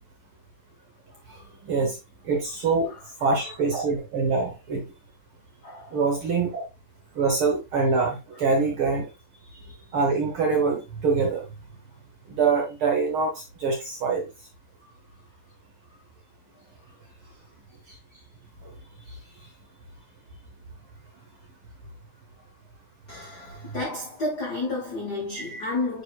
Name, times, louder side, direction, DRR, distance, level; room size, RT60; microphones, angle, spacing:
voice 1, 1.6-2.0 2.2-2.9 3.2-4.8 5.9-6.6 7.2-9.0 9.9-11.4 12.3-14.3 25.5-25.6, right 4 dB, 60° right, 1.4 m, -24 dB
voice 2, 2.6-3.4 5.6-6.0 23.1-26.0, left 2 dB, 75° left, 0.9 m, -32 dB
9.1 x 4.4 x 2.4 m
omnidirectional pair, 3.8 m